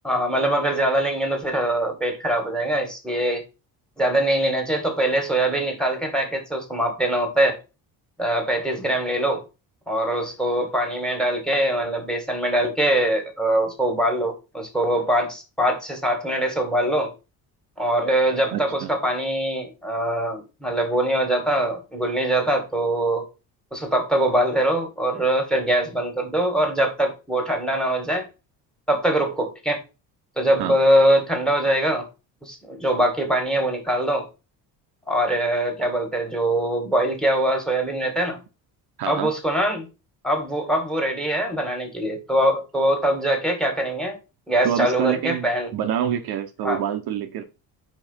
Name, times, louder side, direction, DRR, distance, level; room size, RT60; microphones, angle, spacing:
voice 1, 0.0-3.4 4.0-7.6 8.2-9.4 9.9-17.1 17.8-23.3 23.7-28.3 28.9-29.8 30.4-32.0 32.4-34.3 35.1-38.4 39.1-39.9 40.2-44.2 44.5-45.7 46.6-46.8, right 1 dB, ahead, 1.9 m, -23 dB
voice 2, 18.5-18.9 30.6-30.8 39.0-39.3 44.6-47.4, right 9 dB, 65° right, 1.1 m, -26 dB
5.1 x 4.2 x 5.6 m
cardioid pair, 140°, 40 cm